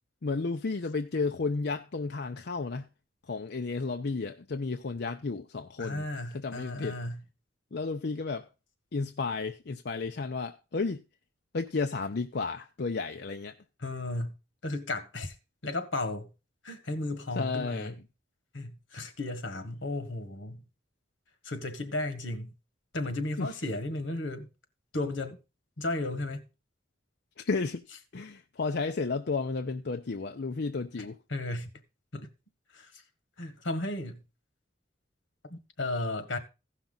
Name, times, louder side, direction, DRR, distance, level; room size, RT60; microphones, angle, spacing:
voice 1, 0.2-2.9 3.3-6.0 6.3-7.0 7.7-8.5 8.9-11.0 11.5-13.5 17.4-17.9 23.4-23.5 27.4-27.8 28.1-31.2, left 4 dB, 60° left, 0.6 m, -32 dB
voice 2, 5.8-7.2 13.8-14.3 14.6-15.3 15.6-16.3 16.6-18.0 18.5-20.6 21.4-22.5 22.9-24.5 24.9-25.4 25.8-26.4 31.0-31.7 32.1-32.3 32.7-32.9 33.4-34.2 35.5-36.4, left 2 dB, 85° left, 1.5 m, -34 dB
16.0 x 5.9 x 3.9 m
head